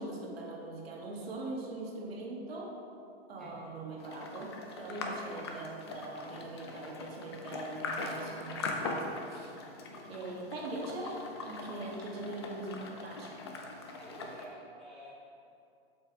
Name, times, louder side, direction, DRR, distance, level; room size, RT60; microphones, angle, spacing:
voice 1, 0.0-2.8 3.3-4.5 4.8-9.5 9.9-13.5, right 2 dB, 65° right, -1 dB, 1.8 m, -41 dB
voice 2, 3.4-3.7 11.8-12.2 13.9-15.1, equal, ahead, -12 dB, 0.9 m, -52 dB
sound 1, 4.0-14.5, left 3 dB, 25° left, 0.5 m, -41 dB
7.8 x 5.8 x 4.6 m, 2.5 s
supercardioid pair, 180°, 32 cm